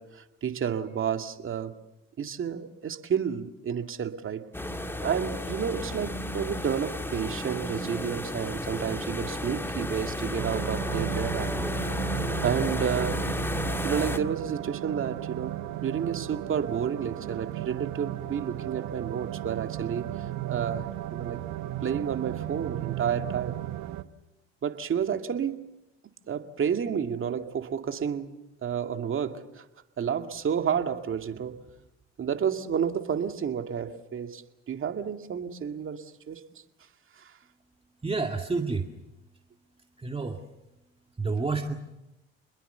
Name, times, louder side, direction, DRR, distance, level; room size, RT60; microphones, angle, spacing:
voice 1, 0.0-1.7 2.2-4.5 5.0-11.5 12.4-13.2 13.8-20.1 20.5-20.8 21.1-21.4 21.8-23.6 24.6-25.7 26.3-29.7 30.0-31.6 32.2-36.4 37.2-37.3, right 7 dB, 40° right, 6 dB, 2.2 m, -30 dB
sound 1, 4.5-14.2, left 1 dB, 5° left, 2.1 m, -32 dB
sound 2, 10.4-24.0, right 15 dB, 65° right, 1.2 m, -35 dB
voice 2, 38.0-38.9 40.0-40.4 41.2-41.7, right 3 dB, 20° right, 3 dB, 2.1 m, -29 dB
28.0 x 21.5 x 6.9 m, 0.94 s
hypercardioid pair, 70°, 30 cm